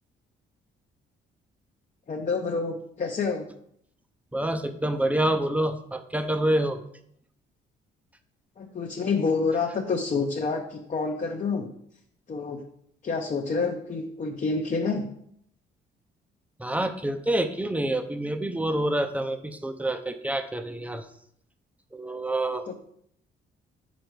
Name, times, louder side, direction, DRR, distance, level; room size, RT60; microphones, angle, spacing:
voice 1, 2.1-3.5 8.6-11.7 12.3-12.6 13.0-15.0 22.7-22.8, left 4 dB, 40° left, 1 dB, 0.7 m, -28 dB
voice 2, 4.3-6.8 16.6-21.0 21.9-22.6, right 1 dB, 5° right, 8 dB, 0.6 m, -27 dB
5.2 x 5.1 x 4.6 m, 0.69 s
cardioid pair, 90°, 20 cm